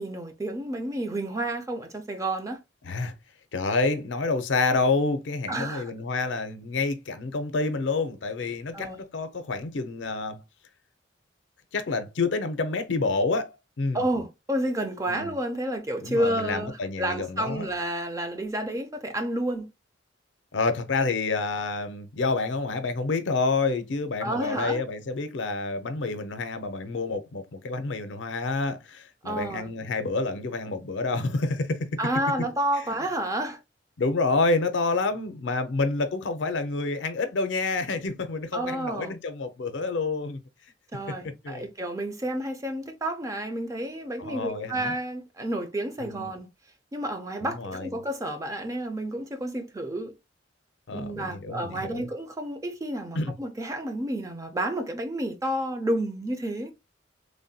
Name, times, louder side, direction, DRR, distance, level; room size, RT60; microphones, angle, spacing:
voice 1, 0.0-2.6 5.5-5.9 8.7-9.0 13.9-19.7 24.2-24.8 29.2-29.7 32.0-33.6 38.5-39.1 40.9-46.5 46.9-50.1 50.9-56.7, right 1 dB, 15° right, 0.4 m, -30 dB
voice 2, 3.5-10.4 11.7-14.0 15.1-15.3 16.0-17.7 20.5-31.9 34.0-40.4 41.4-41.7 44.2-44.9 46.0-46.3 47.4-48.0 50.9-52.1 53.1-53.3, left 3 dB, 75° left, 0.5 m, -28 dB
3.2 x 2.2 x 2.6 m
head